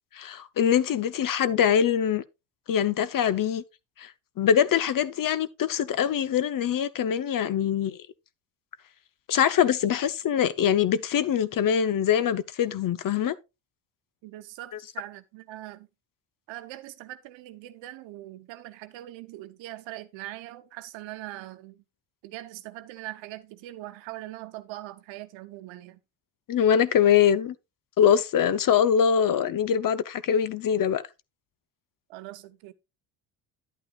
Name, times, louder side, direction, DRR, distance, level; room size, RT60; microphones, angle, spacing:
voice 1, 0.1-2.2 2.7-3.6 4.0-4.1 4.4-8.0 9.3-13.3 26.5-27.5 28.0-31.0, left 8 dB, 45° left, 0.7 m, -23 dB
voice 2, 14.2-15.9 16.5-21.8 22.2-26.0 32.1-32.7, right 16 dB, 80° right, 1.0 m, -41 dB
10.5 x 8.6 x 2.4 m
supercardioid pair, 75°, 45 cm